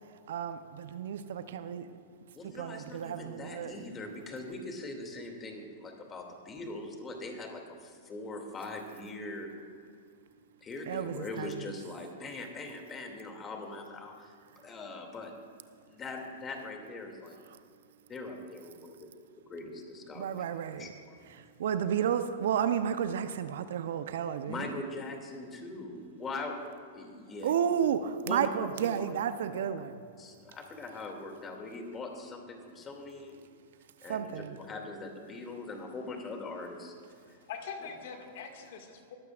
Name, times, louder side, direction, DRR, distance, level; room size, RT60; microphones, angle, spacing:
voice 1, 0.3-1.9 2.4-3.8 10.9-11.7 17.5-17.6 20.1-20.9 21.3-24.7 27.4-30.0 34.1-34.5, right 8 dB, 70° right, 11 dB, 0.8 m, -32 dB
voice 2, 2.3-9.5 10.6-14.3 14.6-15.3 15.9-17.4 18.1-19.1 19.5-20.3 20.8-21.2 24.5-26.5 26.9-27.5 28.3-28.9 29.5-29.7 30.2-33.4 34.0-34.3 34.6-36.9 37.3-37.4 37.8-37.9, left 2 dB, 25° left, 2 dB, 2.6 m, -41 dB
voice 3, 37.2-39.2, left 6 dB, 65° left, 3 dB, 2.1 m, -43 dB
21.0 x 15.0 x 2.5 m, 2.3 s
hypercardioid pair, 105°, 0 cm